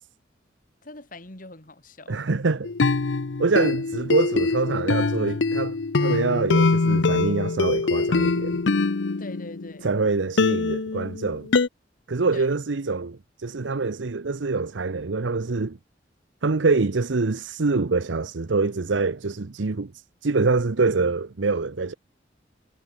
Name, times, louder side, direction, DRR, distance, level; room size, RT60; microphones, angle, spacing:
voice 1, 0.8-2.2 9.2-9.9 12.3-12.5, left 2 dB, 45° left, 2.9 m, -42 dB
voice 2, 2.1-2.7 3.4-8.6 9.8-11.5 12.1-15.8 16.4-21.9, right 3 dB, 90° right, 0.8 m, -25 dB
sound 1, 2.6-9.9 10.4-11.7, left 3 dB, 80° left, 0.7 m, -23 dB
head